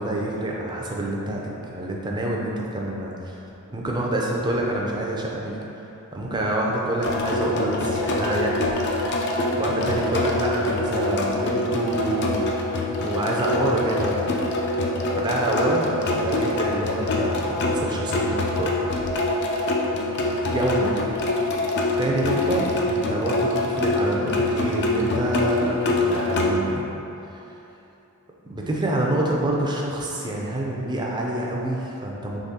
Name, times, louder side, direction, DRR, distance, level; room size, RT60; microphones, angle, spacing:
voice 1, 0.0-3.4 3.7-5.6 6.1-8.7 9.6-14.2 15.1-18.7 20.4-20.9 22.0-26.9 28.5-32.4, right 1 dB, 20° right, -2 dB, 0.5 m, -27 dB
sound 1, 7.0-26.5, left 2 dB, 50° left, 0.4 m, -25 dB
3.6 x 3.2 x 4.1 m, 2.9 s
head